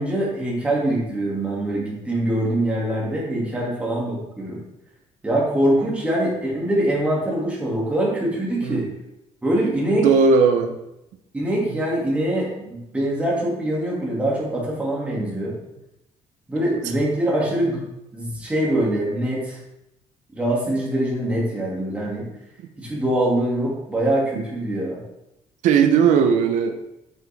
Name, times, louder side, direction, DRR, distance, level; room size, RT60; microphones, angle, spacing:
voice 1, 0.0-4.6 5.2-8.9 9.4-10.1 11.3-15.6 16.5-17.8 18.1-19.6 20.3-22.2 22.8-25.0, right 1 dB, 10° right, -4 dB, 2.3 m, -23 dB
voice 2, 10.0-10.8 11.6-11.8 24.3-24.4 25.6-26.8, right 6 dB, 85° right, 6 dB, 0.8 m, -18 dB
8.7 x 6.7 x 3.5 m, 0.87 s
cardioid pair, 170°, 12 cm